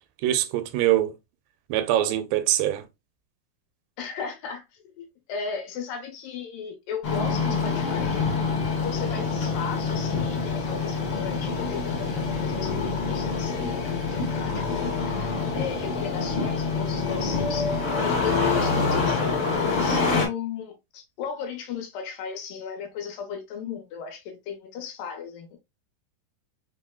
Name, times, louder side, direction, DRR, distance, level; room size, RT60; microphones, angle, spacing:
voice 1, 0.2-1.2 1.7-2.8, right 13 dB, 85° right, 2.3 m, -23 dB
voice 2, 4.0-4.6 5.0-8.1 8.8-25.6, left 6 dB, 80° left, 2.5 m, -36 dB
Engine starting, 7.0-20.3, left 4 dB, 60° left, 1.5 m, -26 dB
5.6 x 2.1 x 2.2 m
omnidirectional pair, 3.9 m